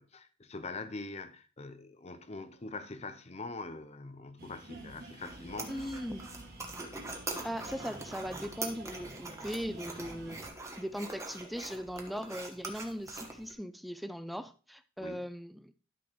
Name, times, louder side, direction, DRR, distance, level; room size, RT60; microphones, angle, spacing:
voice 1, 0.0-5.9 15.0-15.3, left 3 dB, 35° left, 0.7 m, -43 dB
sound 1, 4.4-10.5, right 2 dB, 50° right, 1.8 m, -49 dB
sound 2, 5.2-13.5, right 2 dB, 15° right, 1.3 m, -43 dB
voice 2, 5.7-6.3 7.4-10.5 10.8-15.7, equal, ahead, 0.3 m, -39 dB
12.0 x 6.2 x 3.1 m
head